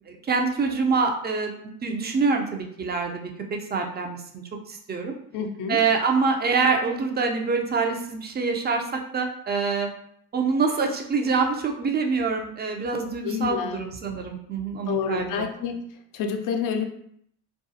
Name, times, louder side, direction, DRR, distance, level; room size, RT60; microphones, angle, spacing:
voice 1, 0.1-1.5 1.8-4.4 4.7-5.2 5.7-9.9 10.3-15.5, right 4 dB, 25° right, 3 dB, 0.4 m, -25 dB
voice 2, 5.3-5.8 13.2-13.8 14.9-15.8 16.1-16.9, left 7 dB, 50° left, 4 dB, 0.4 m, -28 dB
2.4 x 2.3 x 2.6 m, 0.69 s
hypercardioid pair, 60°, 43 cm